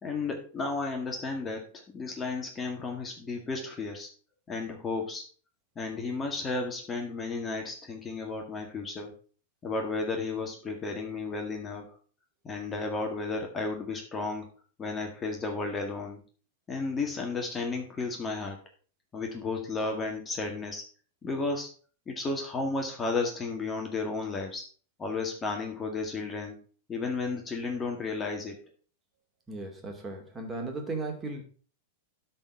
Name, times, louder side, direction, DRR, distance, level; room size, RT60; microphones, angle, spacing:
voice 1, 0.0-4.1 4.5-5.2 5.8-9.1 9.6-11.9 12.4-14.5 14.8-16.2 16.7-18.6 19.1-20.8 21.2-21.7 22.1-24.7 25.0-26.6 26.9-28.6, left 3 dB, 20° left, 3 dB, 1.9 m, -33 dB
voice 2, 29.5-31.4, right 3 dB, 20° right, 2 dB, 2.6 m, -36 dB
12.0 x 4.5 x 4.8 m, 0.41 s
hypercardioid pair, 105°, 0 cm